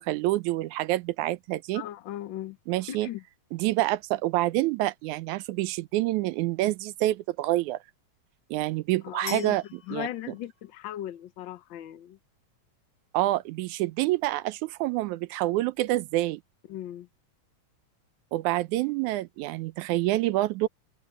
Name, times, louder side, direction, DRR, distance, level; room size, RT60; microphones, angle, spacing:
voice 1, 0.0-1.8 2.7-3.1 3.5-7.8 8.5-9.6 9.9-10.1 13.1-16.4 18.3-20.7, right 17 dB, 85° right, 2.1 m, -27 dB
voice 2, 1.7-2.6 2.9-3.2 9.0-9.6 9.9-12.2 16.7-17.1, left 12 dB, 85° left, 1.0 m, -37 dB
sound 1, 9.3-11.2, left 6 dB, 70° left, 2.7 m, -45 dB
omnidirectional pair, 3.3 m